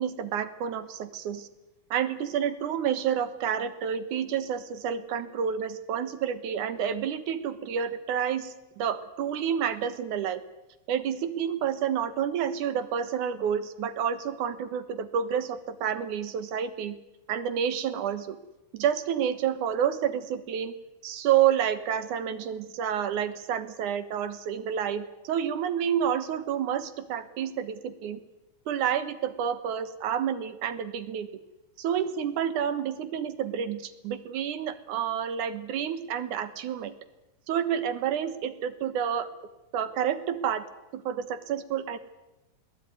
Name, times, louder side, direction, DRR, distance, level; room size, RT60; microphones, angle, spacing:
voice 1, 0.0-1.5 1.9-10.4 10.9-17.0 17.3-18.4 18.7-20.7 21.0-28.2 28.7-31.3 31.8-37.0 37.5-39.3 39.7-40.6 40.9-42.0, right 8 dB, 75° right, 12 dB, 2.8 m, -29 dB
21.0 x 17.5 x 9.5 m, 0.99 s
omnidirectional pair, 3.6 m